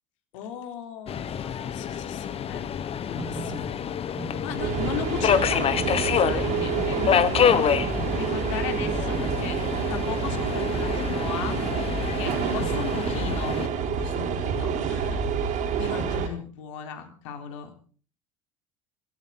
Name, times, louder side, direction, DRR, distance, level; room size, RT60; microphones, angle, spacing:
voice 1, 0.3-2.7 3.0-3.7 4.4-11.6 12.1-13.7 14.0-15.2 15.8-17.8, left 8 dB, 70° left, 5 dB, 3.8 m, -37 dB
Subway metro underground, 1.1-13.7, left 8 dB, 35° left, 1.3 m, -27 dB
sound 1, 3.0-15.2, right 5 dB, 30° right, 2.9 m, -42 dB
sound 2, 4.6-16.3, right 6 dB, 50° right, 5.1 m, -28 dB
27.0 x 13.5 x 4.0 m, 0.42 s
hypercardioid pair, 70°, 16 cm